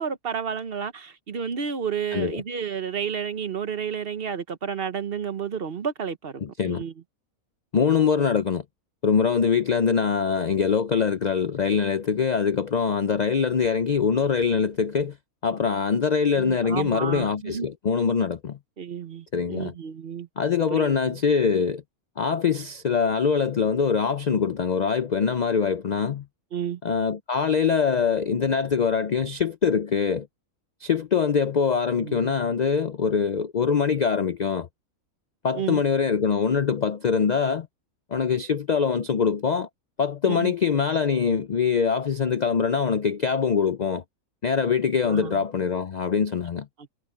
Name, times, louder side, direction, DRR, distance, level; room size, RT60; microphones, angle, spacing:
voice 1, 0.0-6.9 16.4-17.7 18.8-20.3 20.7-21.2 26.5-26.8 32.0-32.3 35.5-35.8 40.2-40.5 45.0-45.4 46.8-47.0, right 7 dB, 45° right, 1.0 m, -31 dB
voice 2, 2.1-2.4 6.4-6.8 7.7-8.6 9.0-15.2 15.4-18.6 19.3-19.7 20.4-21.8 22.2-26.2 26.8-30.3 30.8-34.7 35.4-37.7 38.1-39.7 40.0-44.0 44.4-46.7, left 6 dB, 70° left, 0.4 m, -23 dB
omnidirectional pair, 1.5 m